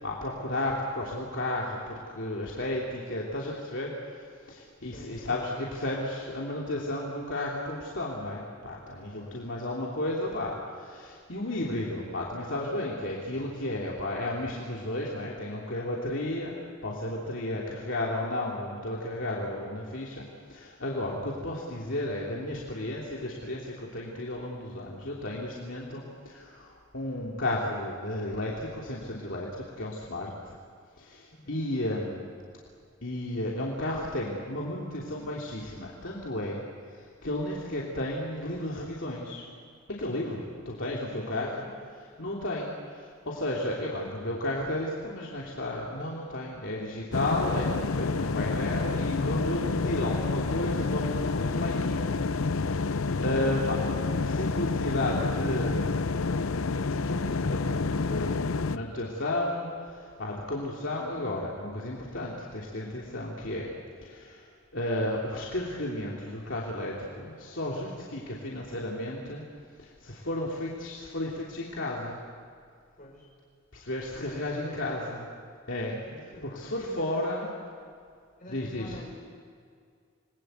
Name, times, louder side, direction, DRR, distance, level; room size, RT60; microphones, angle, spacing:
voice 1, 0.0-30.3 31.0-32.2 33.0-39.4 40.0-41.6 42.2-52.2 52.6-53.9 54.2-56.1 56.5-63.7 64.0-64.4 64.7-69.4 69.8-72.2 73.7-75.2 75.7-76.0 76.4-77.5 78.5-79.0, left 1 dB, 60° left, -4 dB, 3.1 m, -33 dB
voice 2, 4.8-5.3 9.1-9.4 31.3-31.6 41.1-41.8 73.0-73.3 74.3-75.0 76.1-76.5 76.8-77.7 78.4-79.1, left 1 dB, 40° left, -1 dB, 6.5 m, -47 dB
sound 1, 47.1-58.8, left 4 dB, 80° left, 0.7 m, -29 dB
28.0 x 21.0 x 8.2 m, 2.2 s
head